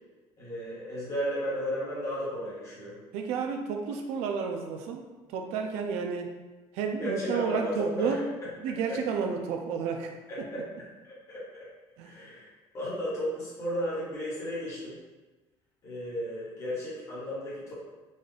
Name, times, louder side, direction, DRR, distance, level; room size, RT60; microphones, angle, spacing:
voice 1, 0.4-2.9 7.0-8.5 8.9-9.0 10.3-10.6 11.0-11.7 12.0-12.5 12.7-15.0 15.8-17.7, equal, 30° left, -8 dB, 1.3 m, -34 dB
voice 2, 3.1-6.3 6.7-8.2 8.6-10.1 12.0-12.2, right 6 dB, 70° right, 4 dB, 0.4 m, -31 dB
4.0 x 2.3 x 3.2 m, 1.2 s
cardioid pair, 175°, 11 cm